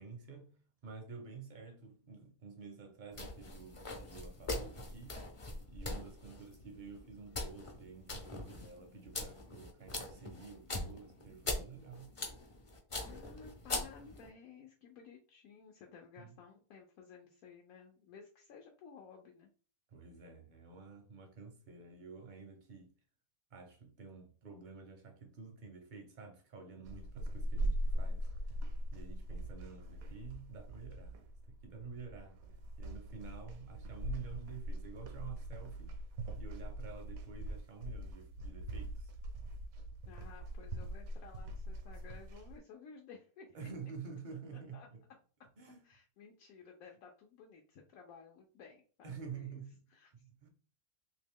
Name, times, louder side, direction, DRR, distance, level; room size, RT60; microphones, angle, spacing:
voice 1, 0.0-5.2 5.7-12.1 16.2-16.4 19.9-22.9 23.5-28.3 28.9-32.4 32.8-36.0 36.4-39.1 43.5-45.0 45.6-45.8 49.0-49.8 50.1-50.5, right 5 dB, 50° right, 0.6 m, -50 dB
sound 1, 3.1-14.3, left 2 dB, 35° left, 0.5 m, -42 dB
voice 2, 13.0-19.5 40.1-43.7 44.7-44.9 45.8-49.6 49.9-50.1, left 6 dB, 80° left, 1.1 m, -55 dB
sound 2, 26.8-42.6, right 1 dB, 75° right, 1.0 m, -41 dB
2.9 x 2.8 x 3.5 m
omnidirectional pair, 1.5 m